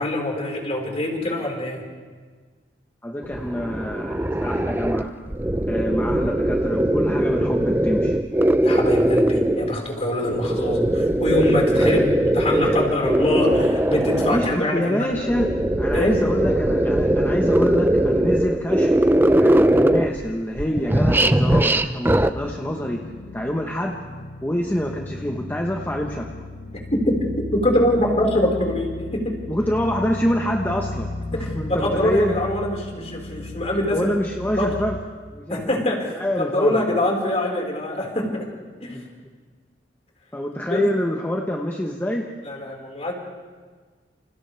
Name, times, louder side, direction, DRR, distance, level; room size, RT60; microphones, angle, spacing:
voice 1, 0.0-1.8 8.6-15.1 15.9-16.1 27.1-27.2 27.5-29.4 31.3-34.1 34.5-34.7 35.5-38.4 38.8-39.0 40.7-40.8 42.4-43.1, left 1 dB, 35° left, -1 dB, 5.0 m, -24 dB
voice 2, 3.0-5.1 5.6-8.2 10.5-10.6 11.7-12.0 12.6-12.8 14.2-19.0 19.3-23.1 23.3-24.0 24.4-26.3 29.5-32.4 33.9-35.0 35.3-35.7 36.1-36.8 38.9-39.1 40.3-42.3, equal, 10° left, 0 dB, 1.2 m, -26 dB
sound 1, 3.2-9.8 10.2-14.6 15.1-20.3 20.6-22.3, right 1 dB, 10° right, 0.6 m, -20 dB
sound 2, 22.3-35.0, left 2 dB, 85° left, 1.4 m, -35 dB
29.0 x 29.0 x 3.5 m, 1.5 s
head